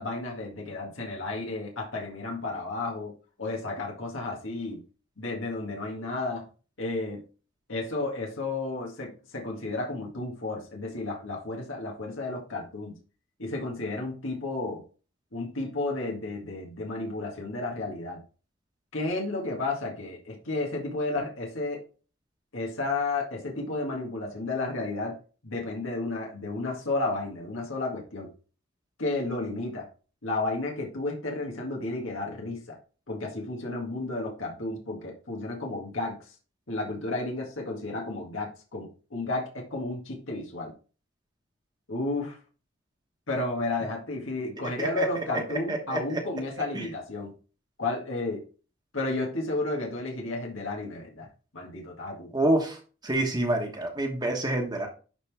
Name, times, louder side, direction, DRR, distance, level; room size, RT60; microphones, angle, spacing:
voice 1, 0.0-3.1 3.4-4.8 5.2-6.4 6.8-7.2 7.7-13.0 13.4-14.8 15.3-18.2 18.9-21.8 22.5-25.2 25.4-28.3 29.0-29.8 30.2-32.8 33.1-36.2 36.7-40.7 41.9-42.4 43.3-47.3 47.8-48.4 48.9-51.3 51.5-52.3, left 2 dB, 90° left, -1 dB, 1.8 m, -32 dB
voice 2, 45.7-46.0 46.7-46.8 52.3-52.8 53.0-54.9, right 1 dB, 20° right, 2 dB, 1.2 m, -27 dB
11.0 x 3.8 x 3.5 m, 0.36 s
head